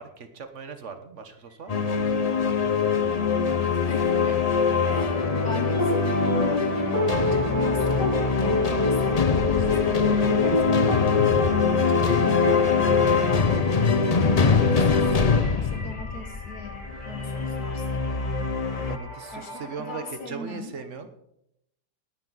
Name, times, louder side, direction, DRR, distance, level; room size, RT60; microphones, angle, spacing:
voice 1, 0.0-1.9 2.6-2.7 18.8-21.1, right 5 dB, 45° right, 8 dB, 1.5 m, -39 dB
sound 1, 1.5-1.8 2.0-20.1, left 1 dB, 25° left, 3.4 m, -43 dB
sound 2, 1.7-19.0, left 5 dB, 50° left, 0.4 m, -23 dB
voice 2, 3.5-11.1 11.7-13.0 13.8-18.6 19.3-20.8, left 3 dB, 65° left, 6 dB, 2.3 m, -40 dB
sound 3, 4.9-13.0, left 1 dB, 85° left, 4.6 m, -28 dB
19.0 x 9.2 x 4.1 m, 0.79 s
omnidirectional pair, 1.8 m